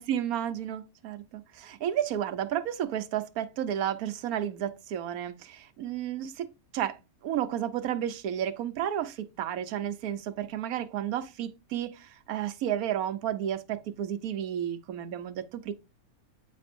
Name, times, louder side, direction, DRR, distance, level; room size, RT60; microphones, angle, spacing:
voice 1, 0.0-6.5 6.7-7.0 7.2-15.7, right 10 dB, 85° right, 1.2 m, -32 dB
8.4 x 5.2 x 2.5 m
omnidirectional pair, 1.5 m